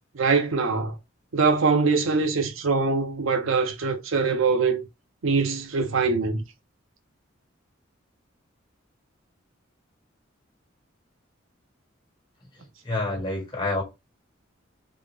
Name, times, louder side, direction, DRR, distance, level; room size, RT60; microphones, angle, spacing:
voice 1, 0.1-0.9 1.3-4.8 5.2-6.4, right 4 dB, 85° right, 0.6 m, -23 dB
voice 2, 12.8-13.8, left 2 dB, 25° left, 1.2 m, -27 dB
3.6 x 2.1 x 3.3 m
head